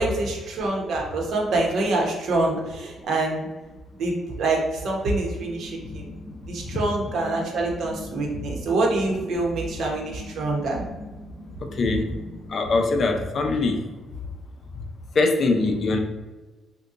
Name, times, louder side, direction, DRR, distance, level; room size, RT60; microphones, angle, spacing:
voice 1, 0.0-3.5 4.0-6.1 6.5-10.8, right 2 dB, 70° right, -1 dB, 0.9 m, -25 dB
sound 1, 5.3-13.3, left 1 dB, 25° right, 1.1 m, -42 dB
voice 2, 11.6-12.1 12.5-13.8 15.1-16.0, left 3 dB, 55° left, 4 dB, 0.5 m, -22 dB
2.8 x 2.2 x 3.7 m, 1.2 s
cardioid pair, 90°, 0 cm